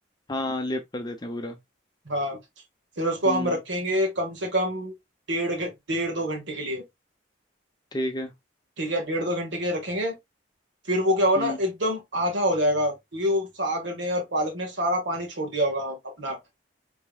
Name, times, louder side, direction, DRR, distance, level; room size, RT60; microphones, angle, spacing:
voice 1, 0.3-1.6 3.2-3.6 7.9-8.3 11.4-11.6, left 1 dB, 20° left, 0.5 m, -30 dB
voice 2, 2.0-2.4 3.0-4.9 5.3-6.8 8.8-10.1 10.9-16.4, equal, 75° right, 1.6 m, -26 dB
5.2 x 3.5 x 2.2 m
head